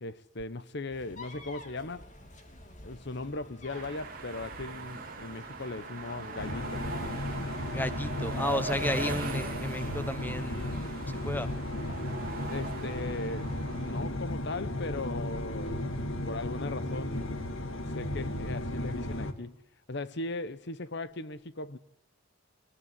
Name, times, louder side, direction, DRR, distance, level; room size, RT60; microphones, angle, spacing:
voice 1, 0.0-2.1 2.8-6.8 12.5-15.8 16.3-17.3 17.9-19.6 19.9-21.8, left 2 dB, 55° left, 1.0 m, -38 dB
sound 1, 0.9-8.2, left 2 dB, 35° left, 3.0 m, -50 dB
sound 2, 3.7-14.0, right 4 dB, 45° right, 3.3 m, -40 dB
sound 3, 6.4-19.3, left 1 dB, 75° left, 2.0 m, -35 dB
voice 2, 7.7-11.5, left 1 dB, 10° left, 0.9 m, -34 dB
22.5 x 19.5 x 9.8 m
head